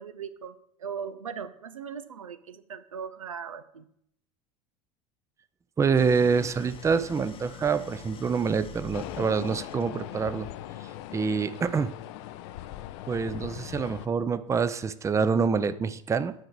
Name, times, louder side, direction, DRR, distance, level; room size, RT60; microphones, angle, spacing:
voice 1, 0.0-3.9, right 7 dB, 85° right, 11 dB, 0.6 m, -39 dB
voice 2, 5.8-10.5 11.1-11.9 13.1-16.3, right 5 dB, 20° right, 13 dB, 0.5 m, -26 dB
Idling, 6.0-10.2, left 6 dB, 35° left, 0.9 m, -45 dB
sound 1, 8.9-14.1, left 13 dB, 60° left, 0.5 m, -40 dB
9.5 x 4.8 x 4.6 m, 0.71 s
figure-of-eight pair, 75°, 17 cm